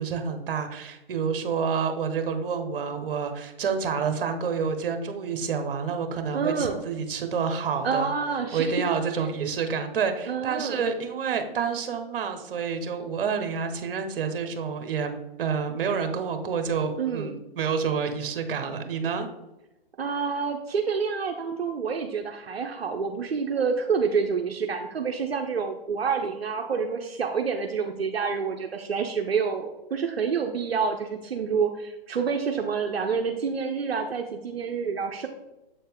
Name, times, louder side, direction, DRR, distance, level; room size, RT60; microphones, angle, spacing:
voice 1, 0.0-8.1 8.5-19.3, right 6 dB, 65° right, 7 dB, 1.1 m, -28 dB
voice 2, 6.3-6.8 7.8-8.7 9.4-9.5 10.3-10.9 17.0-17.4 20.0-35.3, right 5 dB, 90° right, 3 dB, 0.7 m, -28 dB
7.5 x 4.2 x 3.5 m, 0.96 s
hypercardioid pair, 125°, 30 cm